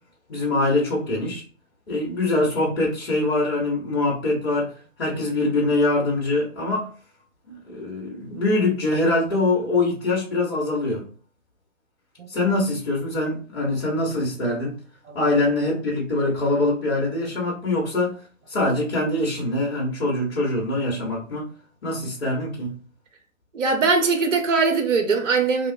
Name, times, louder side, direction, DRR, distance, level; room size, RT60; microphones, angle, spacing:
voice 1, 0.3-1.4 1.9-4.7 5.0-6.9 7.5-11.0 12.3-14.7 15.1-18.2 18.5-21.5 21.8-22.7, left 2 dB, 50° left, 1.1 m, -23 dB
voice 2, 23.5-25.7, right 4 dB, 60° right, 0.6 m, -21 dB
2.8 x 2.3 x 2.6 m
figure-of-eight pair, 130°, 41 cm